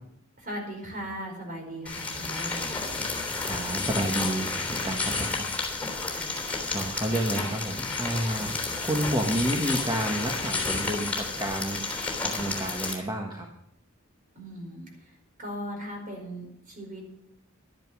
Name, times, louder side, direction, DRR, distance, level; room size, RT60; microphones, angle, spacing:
voice 1, 0.4-2.8 6.1-6.4 8.2-8.5 14.3-17.1, equal, 40° right, 2 dB, 4.8 m, -38 dB
sound 1, 1.9-12.9, left 3 dB, 5° left, 3.3 m, -31 dB
voice 2, 3.4-5.5 6.7-11.8 12.2-13.5, right 1 dB, 20° right, 0 dB, 1.4 m, -30 dB
12.5 x 10.5 x 6.1 m, 0.73 s
head